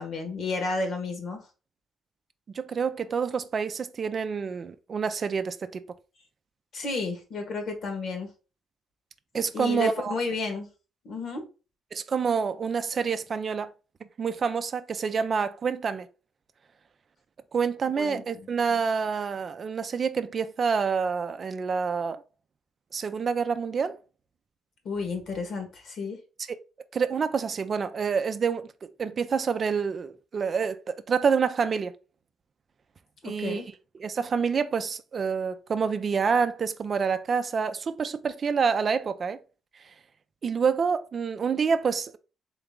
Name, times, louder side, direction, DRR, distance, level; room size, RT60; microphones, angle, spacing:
voice 1, 0.0-1.4 6.7-8.3 9.5-10.7 11.0-11.4 18.0-18.5 24.8-26.2 33.2-33.7, left 3 dB, 60° left, 1.4 m, -32 dB
voice 2, 2.5-5.7 9.3-10.1 11.9-13.7 14.2-16.1 17.5-22.2 22.9-24.0 26.5-26.6 26.9-31.9 33.2-33.6 33.9-39.4 40.4-42.2, right 6 dB, 45° right, 0.4 m, -27 dB
4.0 x 3.3 x 3.7 m
cardioid pair, 90°, 0 cm